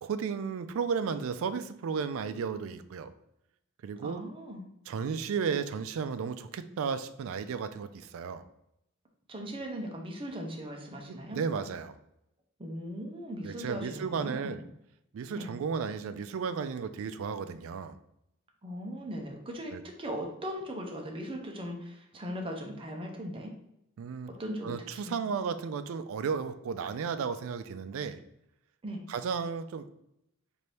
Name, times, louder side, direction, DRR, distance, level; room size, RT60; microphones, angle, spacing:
voice 1, 0.0-3.1 3.8-4.2 4.9-8.4 11.1-12.0 13.4-14.6 15.1-18.0 19.7-19.8 24.0-24.3 24.6-28.2 29.1-29.9, right 6 dB, 70° right, 11 dB, 0.3 m, -34 dB
voice 2, 4.0-4.7 9.3-11.4 12.6-14.6 15.3-15.5 18.6-23.5 24.4-25.2 28.8-29.0, equal, 25° right, 2 dB, 0.6 m, -39 dB
4.2 x 2.6 x 3.3 m, 0.80 s
head